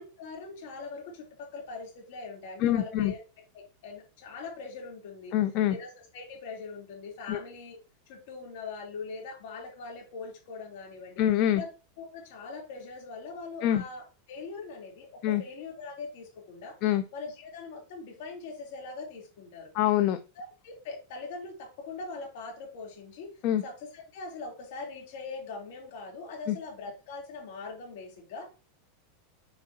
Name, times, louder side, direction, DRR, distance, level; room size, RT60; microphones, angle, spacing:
voice 1, 0.0-3.2 3.5-5.3 5.7-7.8 8.1-11.2 11.5-11.7 12.0-16.8 17.1-19.7 20.3-23.3 23.6-28.5, left 4 dB, 65° left, 0 dB, 3.3 m, -42 dB
voice 2, 2.6-3.1 5.3-5.8 7.3-7.4 11.2-11.6 13.6-13.8 15.2-15.4 16.8-17.0 19.7-20.2 23.4-23.6 26.5-26.6, left 12 dB, 45° left, 9 dB, 0.5 m, -25 dB
7.1 x 4.8 x 2.8 m, 0.31 s
supercardioid pair, 140°, 0 cm